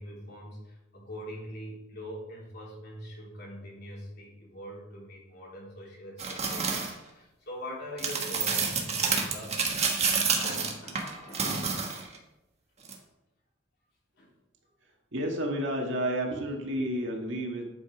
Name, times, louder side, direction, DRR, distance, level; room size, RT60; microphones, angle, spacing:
voice 1, 0.0-9.6 10.2-12.0 14.2-14.3, equal, 60° left, -4 dB, 3.4 m, -43 dB
sound 1, 6.2-6.9 8.0-12.2 12.8-12.9, right 5 dB, 35° right, 1.4 m, -29 dB
voice 2, 15.1-17.6, right 1 dB, 65° right, 0 dB, 1.9 m, -30 dB
11.0 x 5.4 x 4.8 m, 0.98 s
head